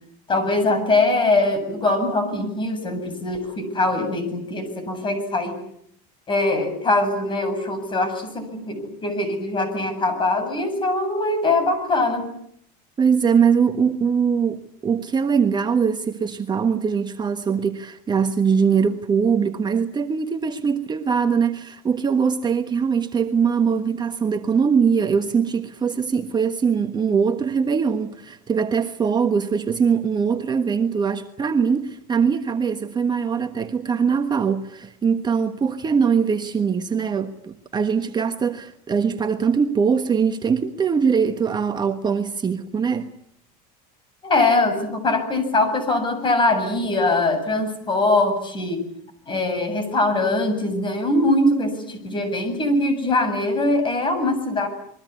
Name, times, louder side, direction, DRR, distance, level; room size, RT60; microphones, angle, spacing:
voice 1, 0.3-5.6 6.3-12.3 44.2-48.8 49.3-54.7, left 2 dB, 25° left, 7.8 m, -22 dB
voice 2, 13.0-43.1, right 6 dB, 20° right, 1.3 m, -22 dB
28.0 x 22.5 x 8.4 m
supercardioid pair, 135°, 20 cm